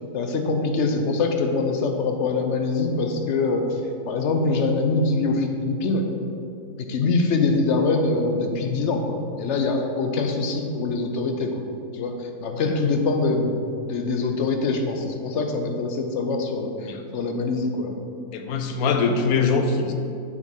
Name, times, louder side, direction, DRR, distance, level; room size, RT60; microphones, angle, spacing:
voice 1, 0.1-3.8 4.1-6.1 6.9-11.6 11.9-12.1 12.4-18.0, left 3 dB, 55° left, 4 dB, 0.9 m, -24 dB
voice 2, 18.3-19.9, left 4 dB, 75° left, 5 dB, 1.1 m, -22 dB
7.5 x 4.1 x 5.3 m, 2.5 s
omnidirectional pair, 1.6 m